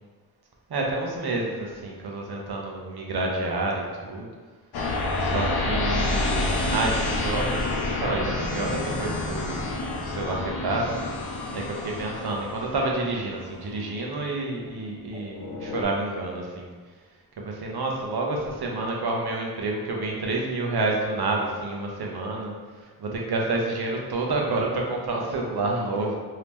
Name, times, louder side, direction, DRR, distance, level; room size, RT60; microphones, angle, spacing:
voice 1, 0.7-4.3 5.2-9.6 10.0-10.9 11.5-16.7 17.4-22.5 23.0-26.1, right 2 dB, 80° right, -1 dB, 0.7 m, -29 dB
sound 1, 4.7-14.3 14.9-15.8, left 2 dB, 80° left, 0.6 m, -29 dB
3.0 x 2.8 x 3.5 m, 1.5 s
wide cardioid pair, 110°, 38 cm